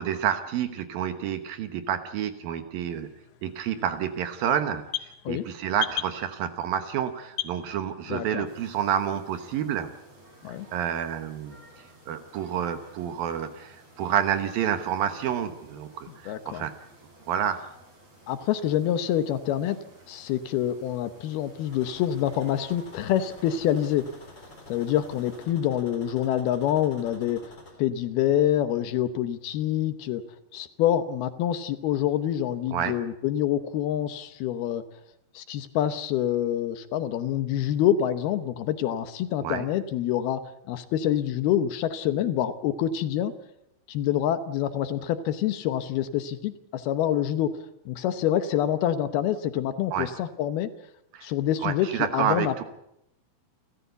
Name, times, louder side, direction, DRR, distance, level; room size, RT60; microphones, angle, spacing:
voice 1, 0.0-3.1 3.4-4.8 5.3-9.9 10.7-11.6 12.1-16.7 17.3-17.6 32.7-33.0 39.4-39.7 49.9-50.1 51.1-51.3 51.6-52.6, right 9 dB, 65° right, 9 dB, 2.6 m, -29 dB
digital G-M counter, 2.9-8.4, left 15 dB, 90° left, 3.8 m, -39 dB
voice 2, 8.1-8.5 10.4-10.7 16.3-16.7 18.3-19.8 20.1-24.1 24.7-27.4 27.8-30.2 30.5-34.8 35.3-40.4 40.7-43.3 43.9-47.6 47.9-50.7 51.2-52.6, left 11 dB, 75° left, 11 dB, 2.7 m, -26 dB
sound 1, 8.4-25.5, right 1 dB, 35° right, 8.0 m, -54 dB
sound 2, 21.7-27.7, left 2 dB, 25° left, 4.5 m, -49 dB
29.0 x 14.0 x 8.1 m, 0.80 s
omnidirectional pair, 4.9 m